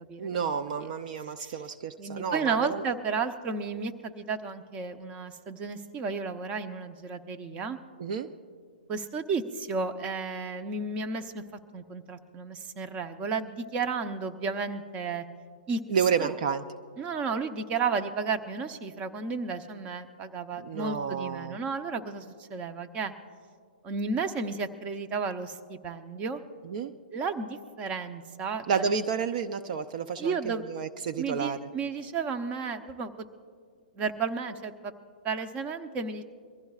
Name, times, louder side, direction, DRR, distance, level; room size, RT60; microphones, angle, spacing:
voice 1, 0.2-2.8 8.0-8.3 15.9-16.6 20.6-21.6 26.6-26.9 28.7-31.7, right 6 dB, 50° right, 9 dB, 0.6 m, -30 dB
voice 2, 2.0-7.8 8.9-11.4 11.7-15.2 15.7-15.8 16.2-16.3 17.0-23.1 23.8-26.4 27.1-28.8 30.2-30.7 31.2-33.1 34.0-34.9 35.2-36.2, right 4 dB, 25° right, 9 dB, 0.8 m, -33 dB
23.5 x 15.5 x 2.4 m, 2.1 s
hypercardioid pair, 135°, 5 cm